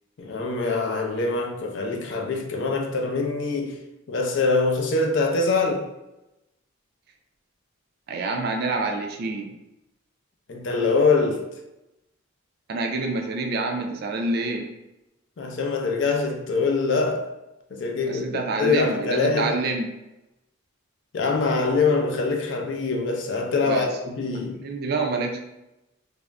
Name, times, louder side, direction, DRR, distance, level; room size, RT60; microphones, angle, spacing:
voice 1, 0.2-3.8 4.1-5.9 10.5-11.4 15.4-17.3 17.7-18.3 18.6-19.6 21.1-24.6, left 4 dB, 55° left, 0.4 m, -24 dB
voice 2, 8.1-9.5 12.7-14.7 18.0-19.9 23.7-23.9 24.6-25.4, right 3 dB, 45° right, 0.3 m, -27 dB
2.4 x 2.0 x 3.3 m
head